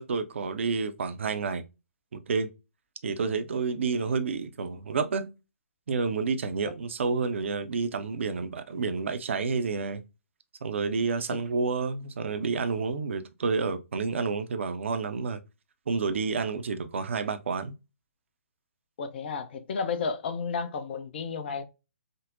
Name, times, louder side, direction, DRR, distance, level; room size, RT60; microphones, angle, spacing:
voice 1, 0.0-1.6 2.1-2.5 3.0-5.3 5.9-10.0 10.6-15.4 15.9-17.7, right 4 dB, 55° right, 0.6 m, -29 dB
voice 2, 19.0-21.6, left 5 dB, 45° left, 0.6 m, -32 dB
5.1 x 2.0 x 2.5 m
figure-of-eight pair, 130°, 8 cm